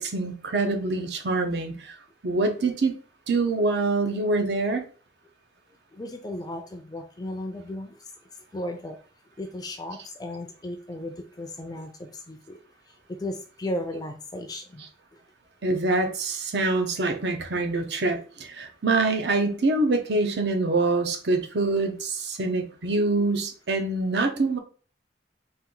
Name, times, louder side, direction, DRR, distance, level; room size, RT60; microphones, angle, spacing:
voice 1, 0.0-1.9 2.2-2.9 3.3-4.8 14.8-14.9 15.6-24.6, right 3 dB, 70° right, 5 dB, 0.7 m, -25 dB
voice 2, 5.9-7.9 8.5-9.0 9.4-12.6 13.2-14.8, left 1 dB, 20° left, 5 dB, 0.4 m, -35 dB
4.3 x 2.5 x 3.8 m, 0.39 s
head